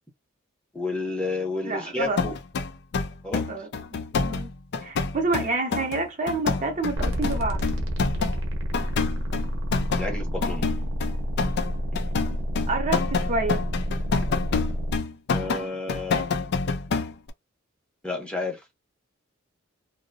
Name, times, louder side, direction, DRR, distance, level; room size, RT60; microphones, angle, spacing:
voice 1, 0.7-2.4 3.2-3.4 10.0-10.7 15.3-16.3 18.0-18.6, left 3 dB, 5° left, 0.8 m, -30 dB
voice 2, 1.7-2.2 3.5-3.7 4.2-4.5 4.8-7.6 12.7-13.6, right 3 dB, 40° right, 0.6 m, -28 dB
sound 1, 2.2-8.4 8.7-17.3, left 4 dB, 55° left, 0.4 m, -27 dB
sound 2, 7.0-15.0, equal, 70° right, 0.8 m, -29 dB
2.6 x 2.0 x 2.6 m
head